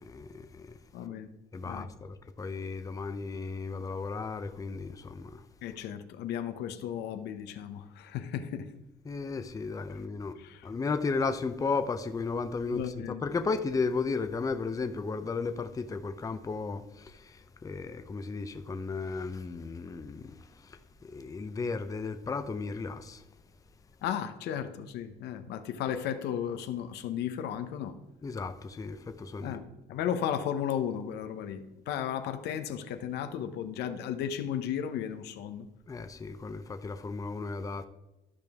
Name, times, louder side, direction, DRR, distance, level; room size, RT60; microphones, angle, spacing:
voice 1, 0.0-0.7 1.5-5.4 9.1-10.3 10.6-20.3 20.6-23.2 28.2-29.6 35.9-37.9, left 4 dB, 20° left, 0.6 m, -34 dB
voice 2, 0.9-1.3 1.6-1.9 5.6-8.7 9.9-10.0 10.4-10.7 12.7-13.2 24.0-27.9 29.4-35.7, left 9 dB, 80° left, 0.8 m, -35 dB
13.0 x 5.1 x 3.5 m
cardioid pair, 110°, 17 cm